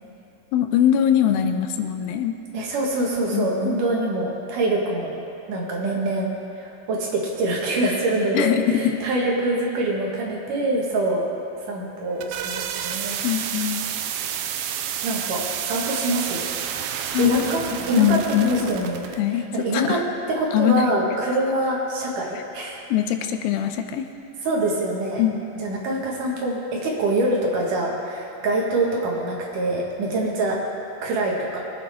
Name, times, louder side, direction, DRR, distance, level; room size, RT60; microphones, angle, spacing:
voice 1, 0.5-2.4 3.3-3.8 8.3-9.0 13.2-13.8 17.1-17.4 17.7-18.8 19.2-20.0 20.5-20.9 22.9-24.1 25.2-25.4, left 10 dB, 85° left, 7 dB, 2.5 m, -22 dB
voice 2, 2.5-5.2 5.5-11.3 11.7-13.2 15.0-16.5 17.2-19.0 19.3-20.0 20.4-22.8 24.4-25.2 25.6-30.6 31.0-31.6, right 2 dB, 65° right, -2 dB, 3.2 m, -25 dB
sound 1, 11.9-19.2, right 9 dB, 85° right, 2.5 m, -30 dB
22.5 x 9.6 x 3.6 m, 2.8 s
omnidirectional pair, 4.1 m